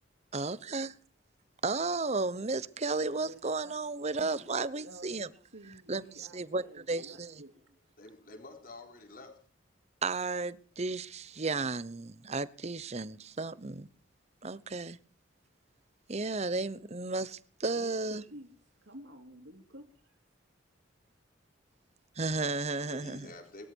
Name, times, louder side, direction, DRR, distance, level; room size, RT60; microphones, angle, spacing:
voice 1, 0.3-0.9 1.6-5.3 5.9-7.4 10.0-13.9 14.4-15.0 16.1-18.2 22.2-23.3, right 3 dB, 35° right, 0.9 m, -33 dB
voice 2, 3.2-3.8 4.2-4.4 4.8-7.5 17.7-18.5 18.8-20.1, right 1 dB, 70° right, 2.8 m, -51 dB
voice 3, 8.0-9.4 22.8-23.7, left 2 dB, 45° left, 4.1 m, -48 dB
21.0 x 13.5 x 4.6 m
head